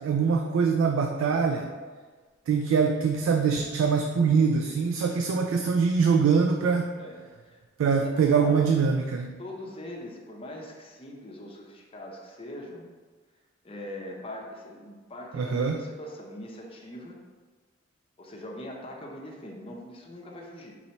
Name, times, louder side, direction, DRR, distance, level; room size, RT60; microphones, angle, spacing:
voice 1, 0.0-1.7 2.5-6.9 7.8-9.3 15.3-15.8, right 5 dB, 85° right, 4 dB, 0.3 m, -23 dB
voice 2, 7.0-8.8 9.4-12.9 13.6-17.2 18.2-20.8, left 1 dB, 30° left, -1 dB, 0.7 m, -41 dB
4.1 x 2.9 x 4.3 m, 1.4 s
head